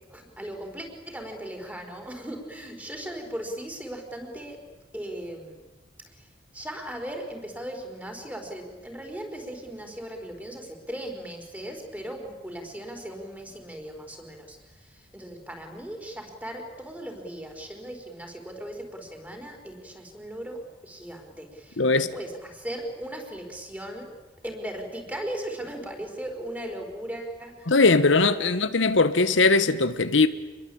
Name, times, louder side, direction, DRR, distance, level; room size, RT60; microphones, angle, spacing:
voice 1, 0.0-4.6 4.9-5.6 6.2-6.3 6.5-24.1 24.4-27.7 28.1-28.6, right 1 dB, 10° right, 4.5 m, -38 dB
voice 2, 21.8-22.1 27.7-30.3, left 3 dB, 80° left, 1.2 m, -20 dB
27.5 x 22.0 x 8.7 m
head